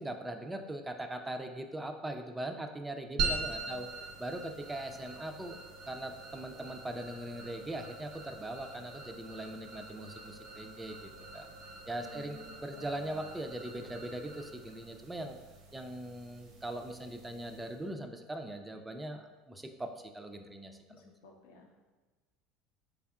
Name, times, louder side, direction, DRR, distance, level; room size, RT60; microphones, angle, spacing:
voice 1, 0.0-3.9 4.2-5.6 5.9-11.5 11.9-15.4 15.7-21.1, right 1 dB, 10° right, 5 dB, 0.3 m, -41 dB
voice 2, 3.1-4.1 12.0-13.2 20.9-21.8, left 3 dB, 85° left, 1 dB, 0.5 m, -53 dB
sound 1, 3.2-17.9, right 3 dB, 70° right, 0.6 m, -43 dB
3.4 x 3.4 x 2.3 m, 1.3 s
supercardioid pair, 95°, 0 cm